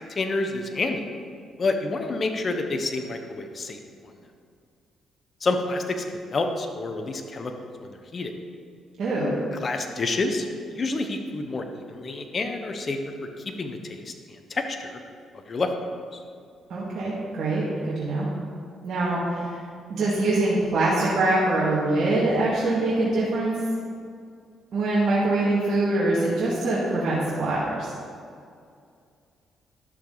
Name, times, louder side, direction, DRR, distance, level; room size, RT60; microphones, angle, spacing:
voice 1, 0.2-1.0 1.6-3.8 5.4-7.5 7.8-8.3 9.5-14.1 14.5-15.0 15.5-15.9, left 3 dB, 40° left, 5 dB, 1.0 m, -28 dB
voice 2, 9.0-9.4 16.7-18.3 18.8-19.6 19.9-23.5 24.7-27.9, right 2 dB, 60° right, -8 dB, 2.0 m, -24 dB
11.5 x 6.8 x 4.0 m, 2.3 s
cardioid pair, 85°, 0 cm